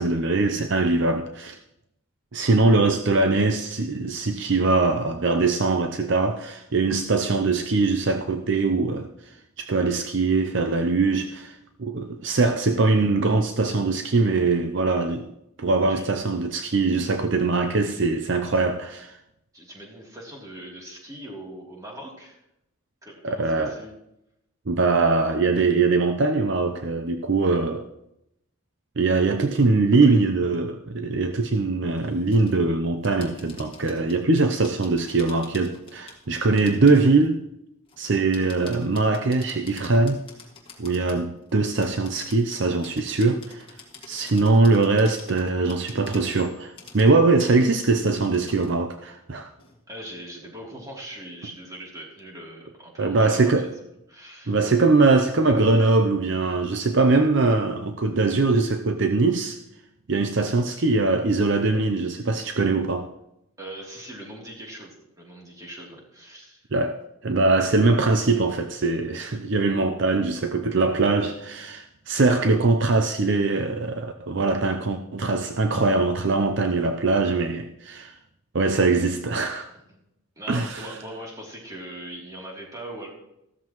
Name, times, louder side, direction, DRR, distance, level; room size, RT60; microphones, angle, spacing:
voice 1, 0.0-1.6 2.3-9.1 9.6-15.3 15.6-19.2 23.2-23.8 24.7-27.9 29.0-37.4 38.0-40.2 40.8-43.7 44.1-49.5 53.0-53.7 54.5-59.6 60.1-63.1 66.7-78.1 78.5-79.7 80.5-80.9, right 3 dB, 55° right, 0.6 m, -22 dB
voice 2, 19.5-22.4 23.0-23.9 29.9-30.2 49.9-53.5 53.8-54.6 63.6-66.6 79.9-80.0 80.4-83.1, right 1 dB, 15° right, 3.1 m, -41 dB
sound 1, 31.9-32.6 33.0-37.3 37.9-41.5 41.8-47.1 47.4-47.6 48.0-48.8 49.1-49.2 49.6-49.8, left 4 dB, 25° left, 2.0 m, -48 dB
15.0 x 13.0 x 3.1 m
head